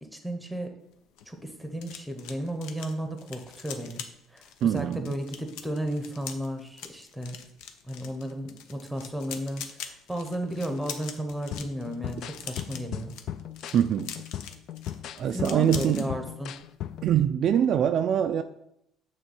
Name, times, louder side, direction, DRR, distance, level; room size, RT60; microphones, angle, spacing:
voice 1, 0.1-0.8 1.3-4.0 4.3-7.4 7.9-13.1 15.3-16.5, equal, ahead, 5 dB, 0.8 m, -34 dB
sound 1, 0.9-16.1 16.4-16.7 16.9-17.2, left 8 dB, 90° left, 0.8 m, -43 dB
voice 2, 4.6-5.2 13.7-14.1 15.2-16.1 17.0-18.4, right 9 dB, 40° right, 7 dB, 0.3 m, -24 dB
sound 2, 11.5-17.1, left 11 dB, 50° left, 0.3 m, -38 dB
8.8 x 3.6 x 6.9 m, 0.78 s
cardioid pair, 175°, 0 cm